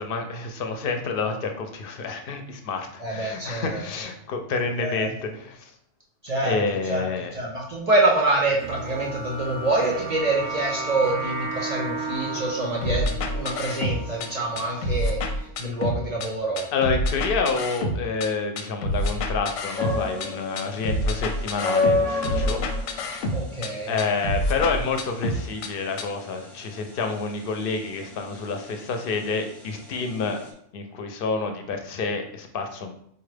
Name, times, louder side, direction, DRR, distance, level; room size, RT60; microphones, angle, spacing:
voice 1, 0.0-5.7 6.4-7.3 16.7-23.1 23.8-30.4 30.7-32.9, left 4 dB, 60° left, 5 dB, 0.6 m, -28 dB
voice 2, 3.0-3.8 4.8-5.1 6.2-6.6 6.9-7.1 7.3-15.2 15.6-16.7 23.3-23.9, right 2 dB, 55° right, -1 dB, 0.4 m, -26 dB
sound 1, 8.6-15.5, right 3 dB, 30° right, 0.7 m, -34 dB
sound 2, 12.8-14.3 14.6-16.3 16.6-18.3 18.6-20.3 20.6-23.7 24.0-25.7 26.0-26.1, left 1 dB, 90° left, 0.9 m, -27 dB
sound 3, 19.8-30.5, left 3 dB, ahead, 0.5 m, -30 dB
4.2 x 2.3 x 3.2 m, 0.69 s
omnidirectional pair, 1.3 m